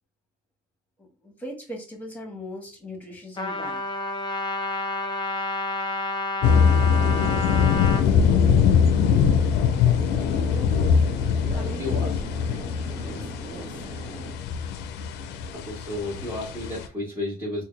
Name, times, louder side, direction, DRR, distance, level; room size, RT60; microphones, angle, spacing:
voice 1, 1.0-3.8 9.8-10.8 11.5-12.1 12.5-12.6 12.9-13.9, left 1 dB, 10° left, 2 dB, 1.2 m, -40 dB
Trumpet, 3.4-8.0, left 2 dB, 25° left, 0.8 m, -29 dB
sound 1, 6.4-16.9, left 7 dB, 85° left, 0.4 m, -22 dB
sound 2, 7.0-14.4, right 5 dB, 65° right, 0.8 m, -40 dB
voice 2, 11.4-12.2 12.5-12.6 13.0-13.3 15.5-17.6, left 1 dB, 20° right, -6 dB, 1.3 m, -33 dB
3.8 x 2.2 x 3.1 m, 0.37 s
cardioid pair, 110°, 17 cm